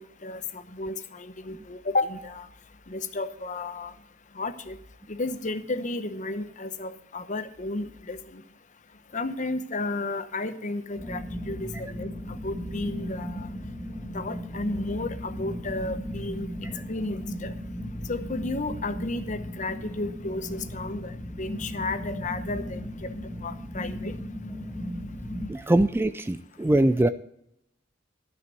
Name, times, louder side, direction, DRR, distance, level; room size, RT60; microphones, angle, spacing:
voice 1, 0.0-2.5 2.9-3.9 4.4-4.8 5.1-8.4 9.1-12.1 12.4-13.5 14.1-16.5 16.9-17.5 18.1-23.1 23.4-24.1, left 2 dB, 40° left, 11 dB, 0.9 m, -33 dB
sound 1, 11.0-25.5, equal, 10° left, 1.5 m, -36 dB
voice 2, 25.5-27.1, right 1 dB, 10° right, 12 dB, 0.3 m, -22 dB
12.5 x 5.9 x 7.7 m, 0.76 s
head